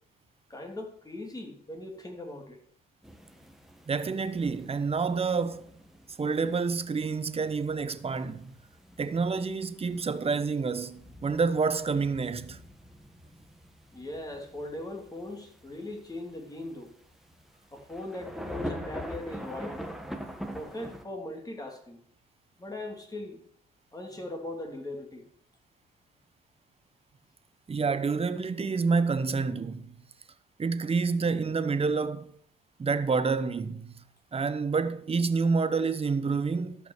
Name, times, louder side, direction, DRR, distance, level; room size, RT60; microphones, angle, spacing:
voice 1, 0.5-2.6 13.9-16.9 17.7-19.8 20.5-22.0 22.6-23.4 23.9-25.3, left 1 dB, 20° left, 2.8 m, -39 dB
sound 1, 3.0-21.0, equal, ahead, 1.5 m, -44 dB
voice 2, 3.9-5.7 6.2-8.5 9.0-12.6 27.7-29.9 30.6-32.3 32.8-33.9 34.3-36.9, right 4 dB, 30° right, 0.9 m, -28 dB
13.0 x 5.9 x 6.5 m
cardioid pair, 90°, 20 cm